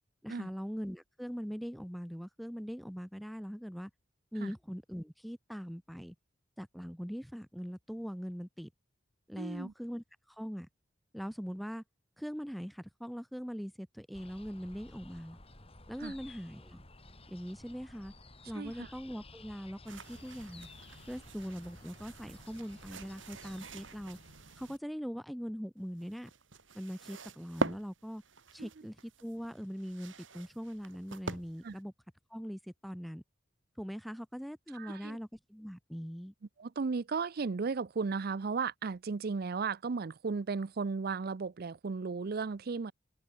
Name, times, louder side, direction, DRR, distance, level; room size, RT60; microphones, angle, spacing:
voice 1, 0.2-3.9 4.3-6.1 6.6-8.7 9.3-10.0 10.4-10.7 11.1-11.8 12.2-15.4 15.9-16.8 17.3-18.1 18.5-20.7 21.1-24.2 24.6-26.3 26.7-28.2 28.5-31.9 32.3-33.2 33.8-36.3, equal, ahead, 2.4 m, -41 dB
voice 2, 9.4-9.7 16.0-16.1 18.5-18.9 28.6-28.9 31.6-31.8 34.7-35.2 36.6-42.9, right 4 dB, 50° right, 0.5 m, -35 dB
sound 1, 14.1-24.8, left 2 dB, 30° left, 4.5 m, -55 dB
sound 2, 19.9-24.8 25.8-31.8, right 2 dB, 85° right, 4.6 m, -43 dB
head